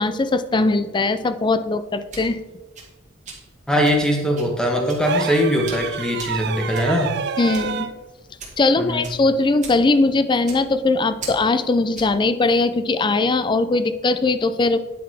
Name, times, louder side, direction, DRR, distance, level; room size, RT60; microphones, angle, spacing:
voice 1, 0.0-2.4 7.4-7.9 8.6-14.8, left 3 dB, 25° left, 12 dB, 0.4 m, -20 dB
sound 1, 1.8-12.2, right 4 dB, 35° right, 2.1 m, -41 dB
voice 2, 3.7-7.1 8.8-9.1, equal, 5° left, 1 dB, 1.2 m, -21 dB
sound 2, 5.0-8.0 9.6-9.8, right 7 dB, 55° right, 0.4 m, -29 dB
10.0 x 4.1 x 4.7 m, 1.2 s
head